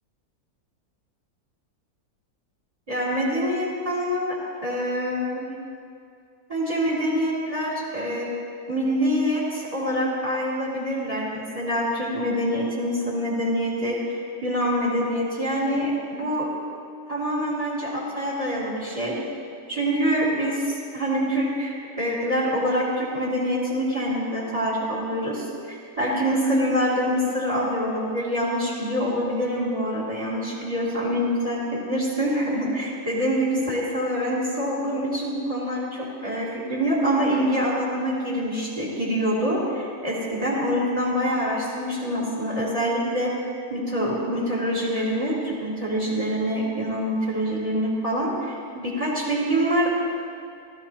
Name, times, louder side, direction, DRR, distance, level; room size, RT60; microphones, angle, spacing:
voice 1, 2.9-4.4 4.6-5.5 6.5-8.3 8.7-16.5 17.1-19.1 19.7-49.9, equal, 25° right, -5 dB, 2.6 m, -25 dB
17.0 x 13.5 x 2.9 m, 2.4 s
omnidirectional pair, 1.6 m